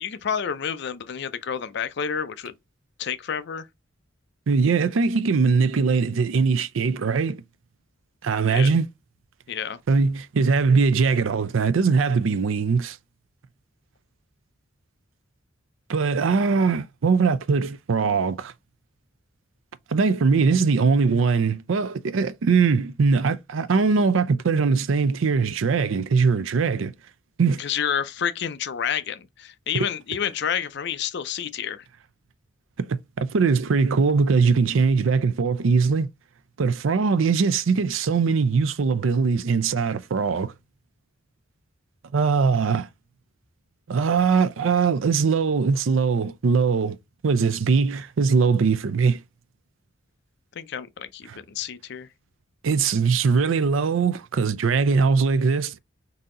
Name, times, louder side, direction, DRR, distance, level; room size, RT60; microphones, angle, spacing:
voice 1, 0.0-2.5 3.0-3.7 8.5-8.7 9.5-9.8 27.6-31.8 50.5-52.1, left 8 dB, 60° left, 0.5 m, -29 dB
voice 2, 4.5-7.4 8.2-8.9 9.9-13.0 15.9-18.5 19.9-26.9 27.4-27.6 29.7-29.9 32.9-36.1 36.6-40.5 42.1-42.9 43.9-47.0 47.2-49.2 51.3-51.4 52.6-55.8, right 5 dB, 80° right, 0.5 m, -21 dB
4.0 x 2.8 x 3.7 m
head